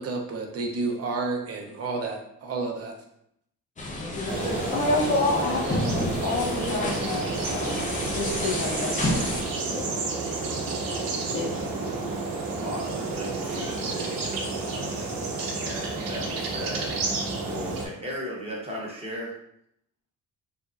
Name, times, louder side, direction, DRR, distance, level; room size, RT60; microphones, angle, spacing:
voice 1, 0.0-2.9, right 3 dB, 45° right, 2 dB, 0.6 m, -30 dB
sound 1, 3.8-9.4, left 1 dB, 25° left, 0.5 m, -31 dB
sound 2, 4.3-17.9, right 3 dB, 85° right, 0.8 m, -30 dB
voice 2, 4.5-9.3 9.7-9.9 11.3-11.7, left 3 dB, 75° left, -8 dB, 0.9 m, -29 dB
voice 3, 12.6-15.1 15.6-16.9 17.5-19.4, equal, 20° right, -4 dB, 0.8 m, -37 dB
3.5 x 2.9 x 2.4 m, 0.75 s
cardioid pair, 155°, 33 cm